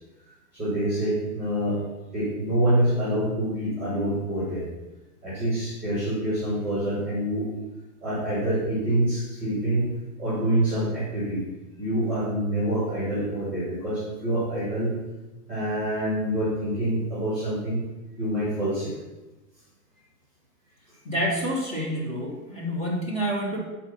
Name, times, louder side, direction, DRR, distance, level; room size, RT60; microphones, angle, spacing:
voice 1, 0.6-1.8 2.1-4.6 5.2-7.5 8.0-9.9 10.2-11.4 11.8-14.9 15.5-17.8 18.2-18.9, right 1 dB, 5° right, -9 dB, 2.8 m, -26 dB
voice 2, 21.0-23.6, equal, 15° left, -4 dB, 1.6 m, -28 dB
7.1 x 4.5 x 5.5 m, 1.1 s
supercardioid pair, 160°, 46 cm